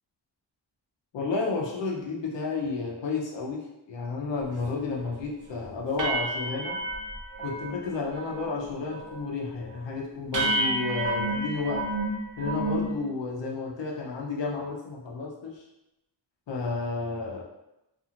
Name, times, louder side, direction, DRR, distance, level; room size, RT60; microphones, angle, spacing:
voice 1, 1.1-3.6 3.9-6.8 7.4-11.8 12.4-15.6 16.5-17.4, left 4 dB, 75° left, -2 dB, 0.8 m, -31 dB
sound 1, 4.5-4.6 4.9-5.2 5.5-5.6 6.0-7.8 8.1-8.6 8.8-9.3 9.7-9.8 10.3-12.9, right 2 dB, 45° right, 0.7 m, -30 dB
2.6 x 2.5 x 2.8 m, 0.91 s
wide cardioid pair, 100°, 44 cm